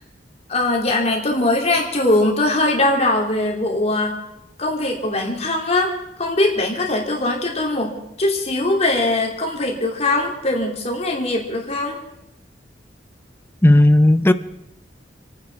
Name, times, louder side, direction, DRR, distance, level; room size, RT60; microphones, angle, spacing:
voice 1, 0.5-4.1 4.6-5.9 6.2-7.9 8.2-12.0, left 2 dB, 35° left, 2.8 m, -21 dB
voice 2, 13.6-14.3, left 1 dB, 15° left, 0.6 m, -12 dB
28.0 x 10.0 x 4.6 m
head